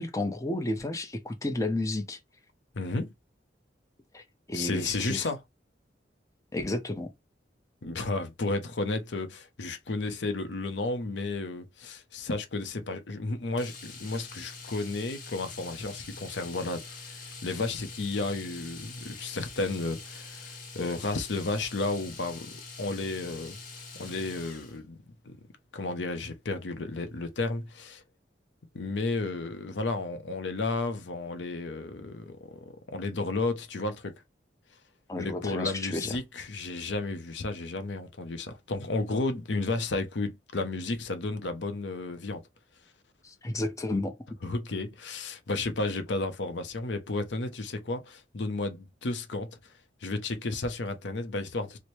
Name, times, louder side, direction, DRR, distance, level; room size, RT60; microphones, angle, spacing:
voice 1, 0.0-2.2 4.1-5.3 6.5-7.1 35.1-36.1 43.2-44.2, left 2 dB, 20° left, 0.7 m, -32 dB
voice 2, 2.7-3.1 4.5-5.4 7.8-23.6 23.9-25.0 25.2-25.5 25.7-28.0 28.7-34.2 35.2-42.4 44.4-49.7 50.0-51.8, left 3 dB, 85° left, 0.7 m, -33 dB
Domestic sounds home sounds, 13.6-24.8 26.9-27.1 27.4-27.5, left 4 dB, 50° left, 1.1 m, -44 dB
3.1 x 2.1 x 4.2 m
head